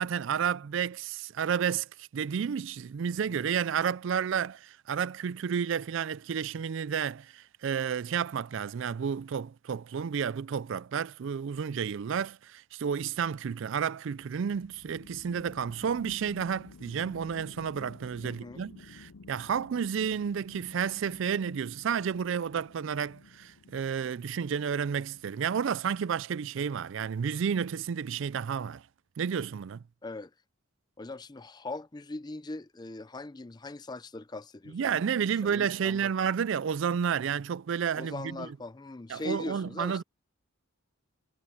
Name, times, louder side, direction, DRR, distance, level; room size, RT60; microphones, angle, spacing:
voice 1, 0.0-28.8 29.2-29.8 34.7-38.5 39.1-40.0, right 7 dB, 60° right, 0.4 m, -31 dB
sound 1, 14.2-26.2, left 3 dB, 85° left, 0.6 m, -53 dB
voice 2, 18.2-18.6 30.0-30.3 31.0-35.0 35.4-36.1 37.9-40.0, left 2 dB, 20° left, 0.5 m, -40 dB
head